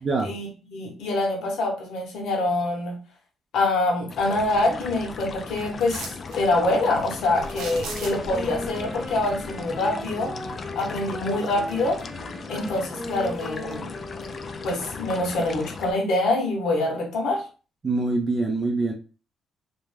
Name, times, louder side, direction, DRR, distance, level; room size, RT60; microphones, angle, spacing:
voice 1, 0.2-2.9 3.5-10.3 10.7-12.0 12.5-13.9 14.6-17.4, left 2 dB, 75° left, 0.8 m, -25 dB
sound 1, 4.1-15.9, left 4 dB, 45° left, 0.3 m, -37 dB
sound 2, 5.8-6.4 7.4-8.4 11.0-11.1 11.6-12.3 12.6-13.8 14.2-14.3, right 5 dB, 90° right, 0.5 m, -39 dB
Wind instrument woodwind instrument, 7.3-15.3, left 1 dB, 5° left, 0.9 m, -38 dB
voice 2, 17.8-18.9, right 3 dB, 35° right, 0.5 m, -24 dB
2.5 x 2.2 x 3.1 m
cardioid pair, 90°, 0 cm